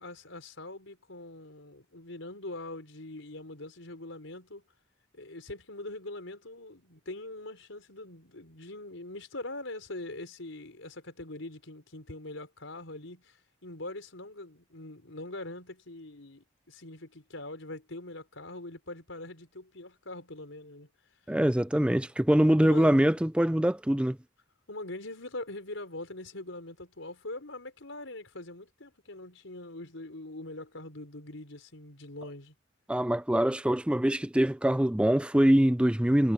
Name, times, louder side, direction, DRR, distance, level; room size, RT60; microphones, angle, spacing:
voice 1, 0.0-4.6 5.1-20.9 22.6-23.1 24.7-32.5, left 2 dB, 90° left, 4.6 m, -42 dB
voice 2, 21.3-24.2 32.9-36.3, right 1 dB, 5° right, 0.4 m, -24 dB
head